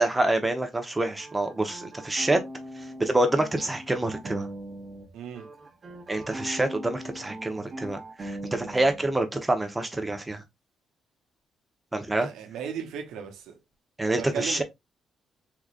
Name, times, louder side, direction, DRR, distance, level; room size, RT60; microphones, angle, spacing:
voice 1, 0.0-2.4 3.0-4.5 6.1-10.4 11.9-12.3 14.0-14.6, right 2 dB, 15° right, 0.9 m, -26 dB
sound 1, 1.2-5.1 5.3-9.2, right 1 dB, 35° right, 1.1 m, -40 dB
voice 2, 5.1-5.5 12.1-13.6 14.1-14.6, right 8 dB, 85° right, 0.8 m, -36 dB
3.8 x 3.1 x 2.4 m
cardioid pair, 90°, 0 cm